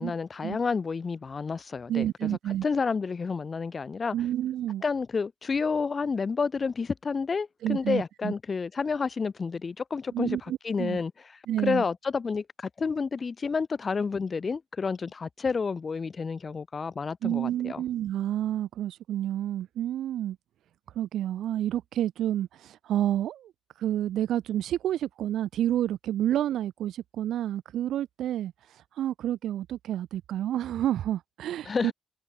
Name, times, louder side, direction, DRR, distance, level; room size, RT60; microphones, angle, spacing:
voice 1, 0.0-4.2 4.8-10.4 10.6-11.1 11.6-17.8 31.6-31.9, left 5 dB, 35° left, 2.6 m, -30 dB
voice 2, 1.9-2.6 4.1-4.8 7.6-8.3 10.1-11.0 11.5-11.8 17.2-20.4 21.0-23.5 23.8-31.9, right 12 dB, 75° right, 0.4 m, -29 dB
cardioid pair, 90°, 0 cm